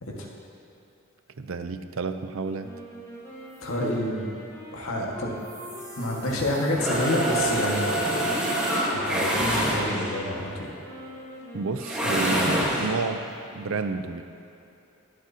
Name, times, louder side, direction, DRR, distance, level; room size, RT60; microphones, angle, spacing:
voice 1, 1.4-2.7 11.5-13.2 13.5-14.2, right 4 dB, 70° right, 9 dB, 0.6 m, -30 dB
sound 1, 2.6-12.6, equal, 15° left, 1.3 m, -42 dB
voice 2, 3.6-4.3 4.7-5.3 6.0-8.0 8.9-10.7, left 1 dB, 80° left, -2 dB, 1.7 m, -28 dB
sound 2, 5.5-10.3 11.8-13.0, right 1 dB, 5° right, 1.3 m, -27 dB
21.0 x 7.6 x 2.8 m, 2.8 s
head